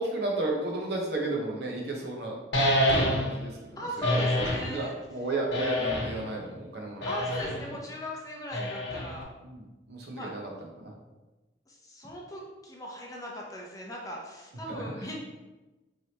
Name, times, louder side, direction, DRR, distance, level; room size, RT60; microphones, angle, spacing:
voice 1, 0.0-2.4 3.1-4.3 4.6-7.1 9.4-10.9 14.7-15.2, right 2 dB, 60° right, -1 dB, 0.9 m, -33 dB
sound 1, 2.5-3.4 4.0-4.7 5.5-6.3 7.0-7.6 8.5-9.2, left 1 dB, 80° left, 1.0 m, -27 dB
voice 2, 3.8-4.9 7.1-9.3 10.0-10.3 11.7-15.2, equal, 20° left, -2 dB, 0.6 m, -38 dB
4.6 x 3.3 x 2.9 m, 1.1 s
head